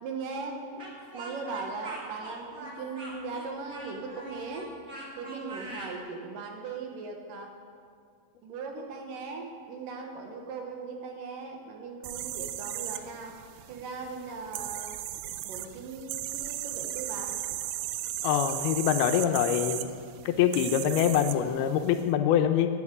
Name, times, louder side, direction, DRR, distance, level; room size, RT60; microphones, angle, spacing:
voice 1, 0.0-0.8 1.1-4.7 5.2-7.5 8.4-13.4 13.7-15.0 15.4-17.4, right 4 dB, 65° right, 3 dB, 2.6 m, -39 dB
Speech, 0.8-5.9, right 2 dB, 35° right, 1.5 m, -43 dB
sound 1, 12.0-22.0, right 13 dB, 85° right, 2.0 m, -36 dB
voice 2, 18.2-19.9 20.3-22.7, left 9 dB, 80° left, 7 dB, 2.5 m, -25 dB
9.3 x 8.8 x 9.7 m, 2.2 s
omnidirectional pair, 4.6 m